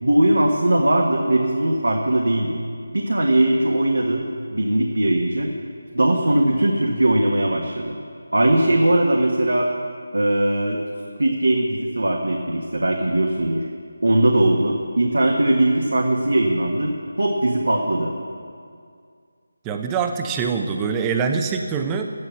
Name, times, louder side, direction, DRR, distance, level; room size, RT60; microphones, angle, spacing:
voice 1, 0.0-2.6 2.9-4.3 4.5-5.5 5.9-8.0 8.3-9.7 10.1-10.8 11.2-13.7 14.0-18.1, right 1 dB, 80° right, 0 dB, 1.6 m, -20 dB
voice 2, 19.6-22.1, right 5 dB, 15° right, 5 dB, 0.7 m, -24 dB
12.5 x 10.5 x 7.2 m, 2.2 s
figure-of-eight pair, 160°, 0 cm